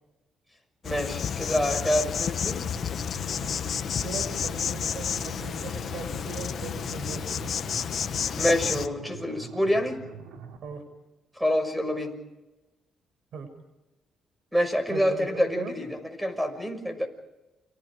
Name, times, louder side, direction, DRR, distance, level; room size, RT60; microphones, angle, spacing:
Insect, 0.8-8.9, left 7 dB, 55° left, 1.3 m, -31 dB
voice 1, 0.8-2.7 8.4-10.0 11.4-12.1 14.5-17.1, equal, ahead, 9 dB, 6.3 m, -27 dB
sound 1, 2.6-10.6, right 6 dB, 90° right, 4.8 m, -44 dB
voice 2, 3.4-3.8 4.0-7.5 8.7-9.3 10.6-10.8 13.3-13.5 14.9-15.7, right 4 dB, 70° right, 9 dB, 6.7 m, -39 dB
30.0 x 26.5 x 5.0 m, 1.1 s
cardioid pair, 90°, 0 cm